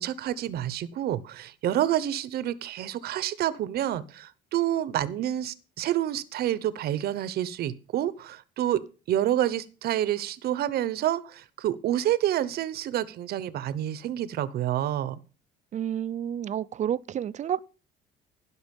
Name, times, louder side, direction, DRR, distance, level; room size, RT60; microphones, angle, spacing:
voice 1, 0.0-8.8 9.1-15.2, right 12 dB, 65° right, 0.9 m, -28 dB
voice 2, 15.7-17.6, right 9 dB, 45° right, 0.6 m, -30 dB
15.5 x 6.3 x 5.3 m
cardioid pair, 110°, 17 cm